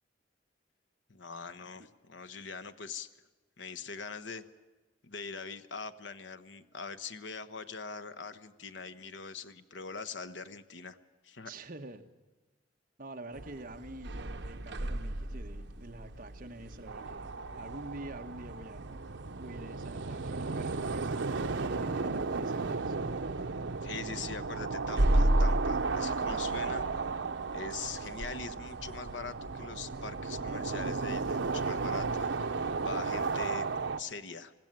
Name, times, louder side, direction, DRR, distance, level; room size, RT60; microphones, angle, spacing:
voice 1, 1.1-3.1 3.6-4.4 5.0-11.0 11.2-11.5 23.8-26.8 27.5-34.5, left 5 dB, 80° left, 13 dB, 1.0 m, -42 dB
voice 2, 11.4-12.0 13.0-17.3 17.6-18.8 19.4-23.0 26.3-26.6, right 1 dB, 45° right, 6 dB, 1.2 m, -46 dB
sound 1, 13.3-32.3, right 1 dB, 70° right, 1.1 m, -36 dB
sound 2, 16.9-34.0, right 4 dB, 85° right, 0.8 m, -34 dB
20.0 x 16.5 x 9.0 m, 1.2 s
head